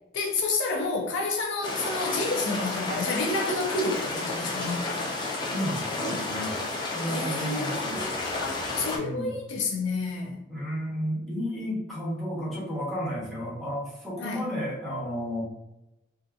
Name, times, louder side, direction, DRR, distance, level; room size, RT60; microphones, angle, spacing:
voice 1, 0.1-5.2 7.1-10.4 14.2-14.4, left 3 dB, 75° left, 0.5 m, -30 dB
sound 1, 1.6-9.0, left 2 dB, 25° left, 0.4 m, -31 dB
voice 2, 5.5-6.6 6.9-8.2 8.9-9.3 10.5-15.4, equal, ahead, 0.9 m, -32 dB
2.5 x 2.5 x 2.3 m
head